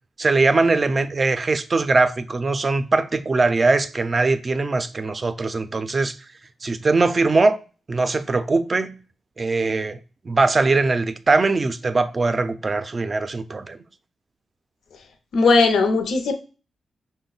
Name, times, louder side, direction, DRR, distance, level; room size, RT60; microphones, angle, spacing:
voice 1, 0.2-6.2 6.6-7.6 7.9-9.0 9.4-10.0 10.2-13.8, right 3 dB, 30° right, 0.4 m, -21 dB
voice 2, 15.3-16.3, left 3 dB, 85° left, 0.6 m, -17 dB
5.8 x 2.1 x 3.9 m
wide cardioid pair, 125°, 0 cm